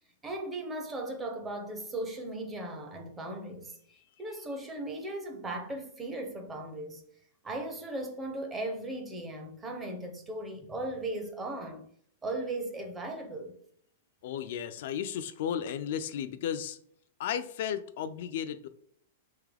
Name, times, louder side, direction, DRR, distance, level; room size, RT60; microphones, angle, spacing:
voice 1, 0.2-3.7 4.2-7.0 7.4-11.9 12.2-13.6, right 2 dB, 10° right, 0.6 m, -37 dB
voice 2, 14.2-16.8 17.2-18.7, left 9 dB, 50° left, 0.3 m, -34 dB
4.1 x 3.5 x 3.3 m
supercardioid pair, 170°, 0 cm